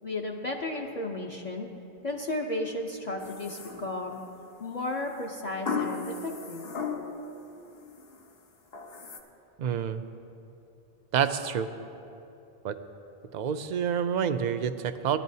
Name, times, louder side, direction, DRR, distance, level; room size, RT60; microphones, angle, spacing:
voice 1, 0.0-1.7 2.0-4.2 4.6-6.7, left 2 dB, 45° left, -2 dB, 0.8 m, -34 dB
sound 1, 3.2-4.3 5.7-7.3 7.7-8.2 8.7-9.2, left 5 dB, 70° left, 1.1 m, -35 dB
voice 2, 9.6-10.0 11.1-11.7 12.6-12.8 13.3-15.2, right 8 dB, 55° right, 9 dB, 0.5 m, -28 dB
17.5 x 11.5 x 2.7 m, 2.8 s
omnidirectional pair, 1.1 m